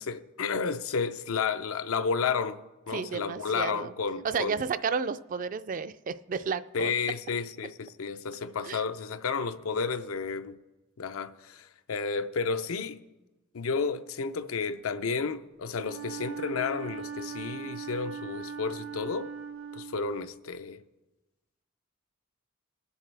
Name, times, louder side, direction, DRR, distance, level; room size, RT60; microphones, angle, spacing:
voice 1, 0.0-4.6 6.7-10.6 11.0-13.0 13.5-19.3 19.7-20.8, left 5 dB, 85° left, 0.5 m, -32 dB
voice 2, 2.9-3.9 4.3-6.9 8.7-8.8, right 5 dB, 40° right, 0.3 m, -32 dB
Wind instrument woodwind instrument, 15.7-20.5, right 6 dB, 85° right, 1.7 m, -40 dB
21.5 x 7.2 x 3.3 m
head